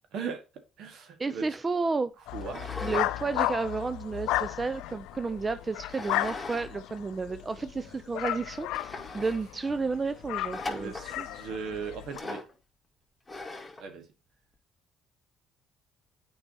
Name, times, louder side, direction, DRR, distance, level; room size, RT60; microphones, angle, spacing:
voice 1, 0.1-0.4 0.8-1.5 2.3-2.7 10.7-12.4 13.8-14.1, right 6 dB, 70° right, 1.6 m, -38 dB
voice 2, 1.2-2.1 2.8-11.3, right 4 dB, 30° right, 0.4 m, -32 dB
sound 1, 2.3-12.2, left 15 dB, 80° left, 0.3 m, -34 dB
sound 2, 2.4-3.1 3.5-4.9 5.9-6.7 7.0-7.1 7.7-7.8 8.3-8.4 8.7-9.4 10.5-11.1 12.1-12.5 13.3-13.8, left 2 dB, 15° left, 2.0 m, -39 dB
8.8 x 4.7 x 2.8 m
supercardioid pair, 70°, 0 cm